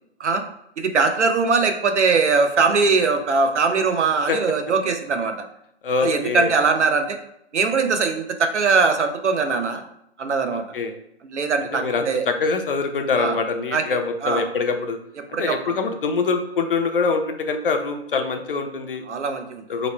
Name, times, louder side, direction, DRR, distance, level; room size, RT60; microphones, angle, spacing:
voice 1, 0.8-5.3 6.0-7.2 7.5-9.8 10.2-10.6 11.3-12.2 13.2-13.3 13.7-13.8 14.2-14.4 15.3-15.7 19.1-19.6, right 4 dB, 80° right, 6 dB, 0.7 m, -21 dB
voice 2, 5.8-6.6 10.5-11.0 11.7-15.0 15.4-19.0 19.7-19.9, left 4 dB, 55° left, 6 dB, 0.5 m, -24 dB
3.0 x 2.1 x 4.1 m, 0.76 s
hypercardioid pair, 150°, 34 cm